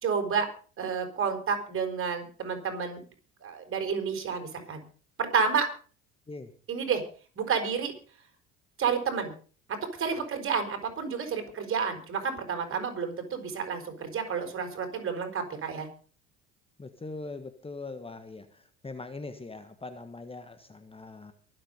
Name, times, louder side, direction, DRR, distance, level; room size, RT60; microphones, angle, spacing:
voice 1, 0.0-0.5 0.8-3.0 3.4-4.8 5.2-5.7 6.7-7.0 7.4-7.9 8.8-9.3 9.7-15.9, right 6 dB, 40° right, 6 dB, 5.0 m, -30 dB
voice 2, 16.8-18.4 18.8-21.3, left 3 dB, 15° left, 9 dB, 1.5 m, -41 dB
23.5 x 7.8 x 5.4 m, 0.40 s
hypercardioid pair, 70°, 34 cm